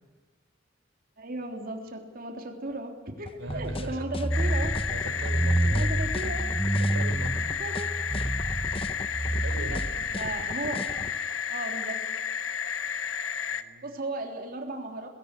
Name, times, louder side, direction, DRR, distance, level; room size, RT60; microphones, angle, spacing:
voice 1, 1.2-4.8 5.6-6.5 7.5-7.9 9.7-9.8 10.2-10.9 11.5-12.0 13.8-15.1, right 2 dB, 50° right, 3 dB, 3.4 m, -36 dB
sound 1, 3.3-11.2, left 2 dB, 30° left, 1.0 m, -38 dB
voice 2, 3.4-4.0 4.9-5.9 6.9-7.4 9.3-9.8 13.5-14.0, right 1 dB, 75° right, 8 dB, 3.8 m, -39 dB
sound 2, 3.5-10.4, right 1 dB, 10° right, 0.6 m, -29 dB
sound 3, 4.3-13.6, left 7 dB, 80° left, 1.2 m, -32 dB
20.0 x 17.5 x 9.8 m, 1.4 s
head